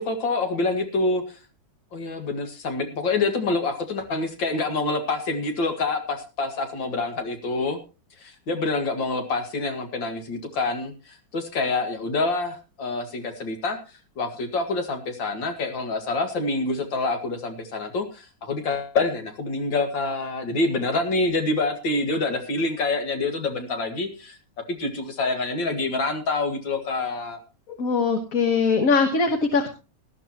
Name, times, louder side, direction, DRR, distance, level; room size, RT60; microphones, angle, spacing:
voice 1, 0.0-1.4 1.9-7.8 8.2-13.8 14.2-24.4 24.7-27.4, left 3 dB, 70° left, 6 dB, 2.6 m, -26 dB
voice 2, 27.7-29.7, left 4 dB, 45° left, 5 dB, 1.6 m, -21 dB
18.5 x 12.5 x 2.9 m, 0.30 s
omnidirectional pair, 2.2 m